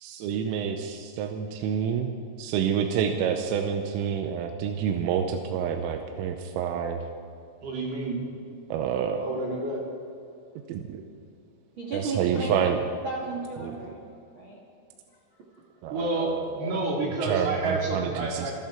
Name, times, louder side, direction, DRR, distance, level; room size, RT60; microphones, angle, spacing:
voice 1, 0.0-7.0 8.7-9.2 10.7-11.1 11.9-12.8 13.6-13.7 15.8-16.8 17.2-18.5, right 8 dB, 90° right, 4 dB, 3.4 m, -28 dB
voice 2, 7.6-8.3 9.2-9.8 15.9-18.5, right 2 dB, 55° right, -3 dB, 4.4 m, -29 dB
voice 3, 11.8-12.5 13.0-14.6 15.5-15.6, right 3 dB, 75° right, -2 dB, 1.1 m, -34 dB
27.0 x 11.0 x 4.5 m, 2.6 s
omnidirectional pair, 5.9 m